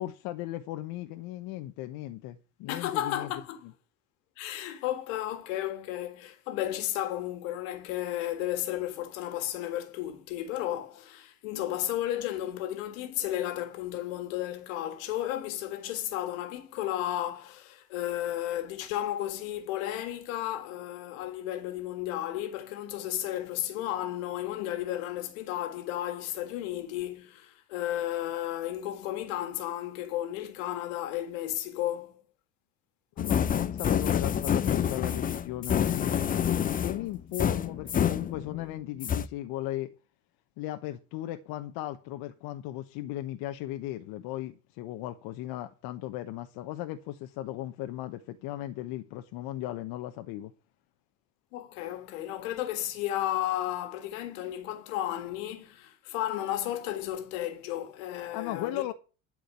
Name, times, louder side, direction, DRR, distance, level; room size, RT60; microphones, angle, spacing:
voice 1, 0.0-3.3 33.2-36.1 36.6-39.9 40.6-50.5 58.3-58.9, left 14 dB, 65° left, 1.1 m, -36 dB
voice 2, 2.7-3.6 4.4-32.2 51.5-58.9, left 13 dB, 80° left, 1.9 m, -33 dB
sound 1, 33.2-38.7 39.0-39.3, left 8 dB, 20° left, 0.5 m, -28 dB
11.5 x 5.0 x 8.2 m
supercardioid pair, 110°, 39 cm